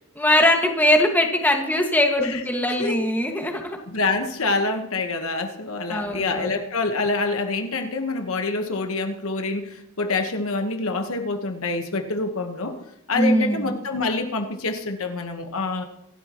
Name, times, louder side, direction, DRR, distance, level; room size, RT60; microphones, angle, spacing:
voice 1, 0.2-3.8 5.9-6.6 13.1-13.8, left 1 dB, 10° left, 2 dB, 1.8 m, -21 dB
voice 2, 3.9-12.7 13.1-15.8, left 3 dB, 65° left, 5 dB, 1.3 m, -26 dB
26.0 x 12.5 x 3.1 m, 0.78 s
head